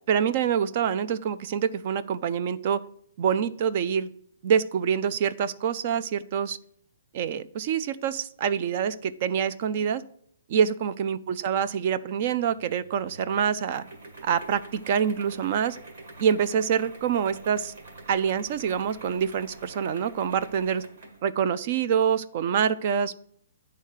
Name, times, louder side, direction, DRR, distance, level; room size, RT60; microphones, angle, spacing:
voice 1, 0.1-2.8 3.2-4.1 4.4-6.6 7.1-10.0 10.5-13.8 14.2-15.8 16.2-17.7 18.1-20.8 21.2-23.1, right 7 dB, 40° right, 13 dB, 0.4 m, -26 dB
sound 1, 12.4-21.3, right 2 dB, 55° right, 1.7 m, -46 dB
9.1 x 3.7 x 6.4 m, 0.62 s
hypercardioid pair, 160°, 0 cm